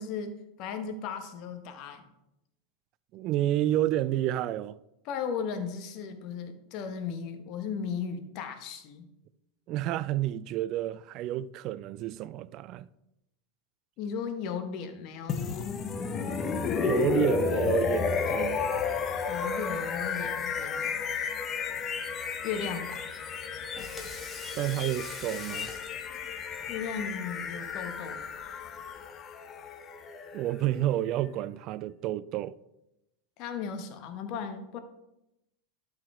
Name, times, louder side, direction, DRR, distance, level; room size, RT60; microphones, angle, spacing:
voice 1, 0.0-2.1 5.0-9.1 14.0-15.7 19.3-21.0 22.4-23.1 26.7-28.2 33.4-34.8, left 6 dB, 50° left, 1.2 m, -36 dB
voice 2, 3.1-4.8 9.7-12.9 16.8-18.7 24.6-25.7 30.3-32.6, right 13 dB, 45° right, 0.3 m, -30 dB
sound 1, 15.3-31.2, left 6 dB, 35° left, 0.8 m, -32 dB
Water tap faucet / Sink (filling or washing), 23.5-29.0, left 2 dB, 20° left, 1.6 m, -47 dB
12.0 x 4.9 x 3.3 m
hypercardioid pair, 90°, 0 cm